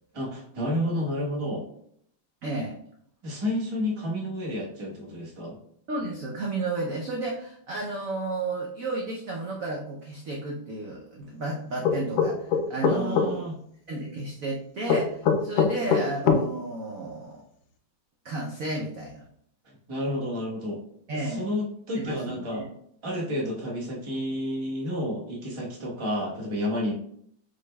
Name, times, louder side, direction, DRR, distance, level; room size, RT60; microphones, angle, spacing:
voice 1, 0.1-1.6 3.2-5.6 12.8-13.5 19.6-20.8 21.2-22.7 23.0-26.9, left 1 dB, 25° right, -3 dB, 0.6 m, -30 dB
voice 2, 2.4-2.8 5.9-13.4 13.9-17.4 18.2-19.3 21.1-21.5 22.0-22.7, right 2 dB, 70° right, -2 dB, 0.8 m, -32 dB
sound 1, 11.8-13.3 14.9-16.4, left 6 dB, 70° left, 1.0 m, -21 dB
4.9 x 4.3 x 2.2 m, 0.68 s
omnidirectional pair, 2.2 m